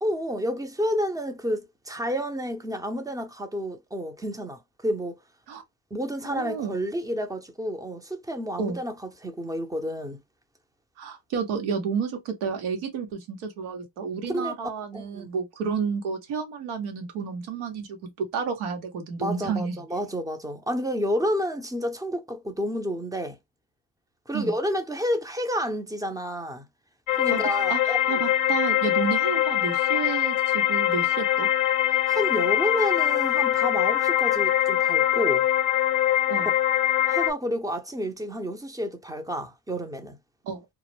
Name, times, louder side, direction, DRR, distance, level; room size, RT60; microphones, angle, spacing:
voice 1, 0.0-5.2 5.9-10.2 14.3-14.5 14.9-15.3 19.2-23.4 24.3-26.7 27.2-28.2 32.1-35.5 37.1-40.2, equal, 10° right, 0.6 m, -30 dB
voice 2, 6.2-6.7 8.6-8.8 11.0-19.8 24.3-24.5 27.3-27.4 27.7-31.5 36.3-36.5 40.4-40.7, right 6 dB, 80° right, 1.0 m, -31 dB
sound 1, 27.1-37.3, left 12 dB, 45° left, 0.5 m, -23 dB
2.2 x 2.0 x 3.1 m
supercardioid pair, 65°, 47 cm